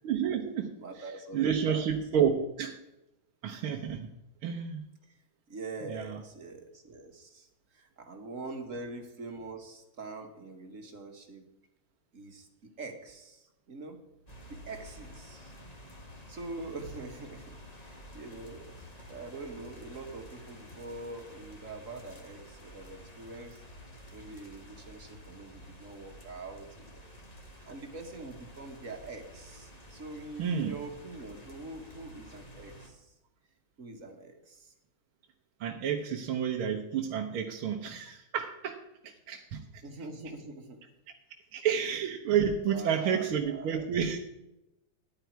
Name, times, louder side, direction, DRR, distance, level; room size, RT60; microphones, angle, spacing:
voice 1, 0.0-2.8 3.4-4.1 4.4-4.9 5.8-6.2 30.4-30.8 35.6-39.8 41.5-44.2, right 7 dB, 75° right, 2 dB, 1.9 m, -30 dB
voice 2, 0.8-1.9 5.5-7.5 7.7-11.4 12.1-12.5 12.8-14.0 14.5-15.5 16.3-18.7 19.1-23.6 24.1-27.1 27.7-33.1 33.8-34.7 39.8-40.8 42.7-43.9, right 3 dB, 40° right, 5 dB, 1.9 m, -44 dB
sound 1, 14.3-32.9, equal, 20° left, 1.7 m, -51 dB
13.5 x 10.5 x 4.6 m, 0.93 s
omnidirectional pair, 2.3 m